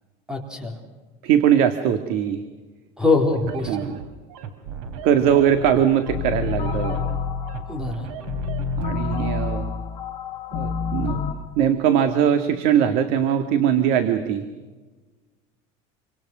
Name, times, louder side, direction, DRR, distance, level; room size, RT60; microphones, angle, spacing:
voice 1, 0.3-0.7 3.0-3.8 7.7-8.1, left 3 dB, 5° right, 4 dB, 3.9 m, -23 dB
voice 2, 1.2-2.4 3.7-4.0 5.0-7.0 8.8-9.7 10.5-11.2 11.6-14.5, right 9 dB, 60° right, 8 dB, 2.0 m, -21 dB
sound 1, 3.3-9.3, right 7 dB, 90° right, 4.0 m, -36 dB
sound 2, 6.1-11.3, left 6 dB, 25° left, 6.5 m, -28 dB
28.0 x 26.0 x 6.2 m, 1.3 s
cardioid pair, 155°, 17 cm